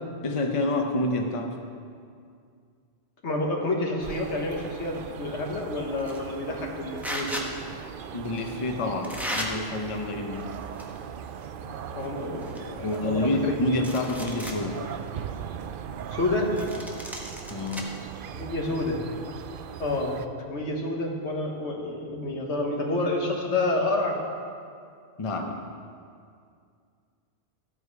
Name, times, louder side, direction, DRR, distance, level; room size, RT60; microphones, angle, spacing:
voice 1, 0.2-1.6 8.1-10.5 12.8-14.8 17.5-17.9 25.2-25.6, left 2 dB, 30° left, 3 dB, 0.8 m, -28 dB
voice 2, 3.2-7.5 11.9-13.5 16.1-16.5 18.3-19.0 19.8-20.2 20.5-24.2, left 2 dB, 85° left, 1 dB, 1.7 m, -29 dB
sound 1, 4.0-20.3, right 7 dB, 60° right, 0.6 m, -39 dB
sound 2, 6.0-6.3 7.0-7.5 8.4-8.5 9.0-9.5 10.4-11.0 11.3-11.4 12.0-12.1 12.4-13.4 13.7-14.6 15.1-15.2 16.6-17.8, equal, ahead, 1.0 m, -35 dB
13.5 x 8.2 x 4.7 m, 2.2 s
omnidirectional pair, 1.1 m